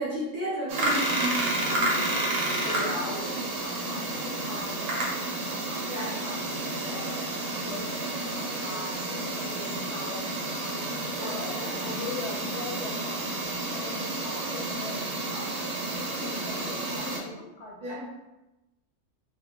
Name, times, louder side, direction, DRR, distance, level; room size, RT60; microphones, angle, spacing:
voice 1, 0.0-1.4 2.9-3.0 5.9-6.1 11.2-12.0 17.8-18.0, right 1 dB, 50° right, -7 dB, 0.7 m, -33 dB
sound 1, 0.7-17.2, right 2 dB, 85° right, 1.0 m, -30 dB
voice 2, 1.7-5.1 5.5-10.8 11.2-13.2 13.7-15.5 15.8-18.1, left 2 dB, 70° left, -2 dB, 0.8 m, -41 dB
2.4 x 2.1 x 2.8 m, 0.98 s
omnidirectional pair, 1.3 m